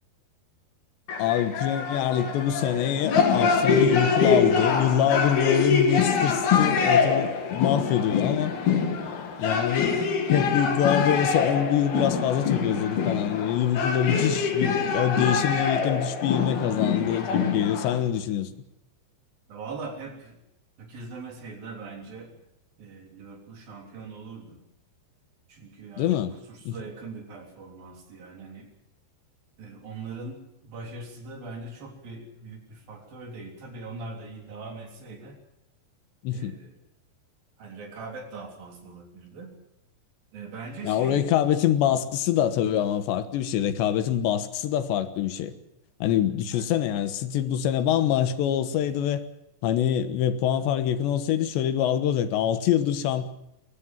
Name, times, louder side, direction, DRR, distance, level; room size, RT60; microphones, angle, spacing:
sound 1, 1.1-18.0, left 5 dB, 65° left, 4.3 m, -25 dB
voice 1, 1.2-8.6 9.4-10.0 10.3-18.5 26.0-26.3 26.7-26.8 36.2-36.6 40.8-45.5 46.0-49.2 49.6-53.3, left 10 dB, 80° left, 3.5 m, -25 dB
voice 2, 19.5-20.4 20.8-22.4 22.8-24.6 25.5-28.7 29.6-35.4 36.3-36.8 37.6-39.5 40.3-41.2 46.5-46.7, right 3 dB, 55° right, 5.1 m, -41 dB
22.5 x 18.0 x 7.5 m
omnidirectional pair, 5.0 m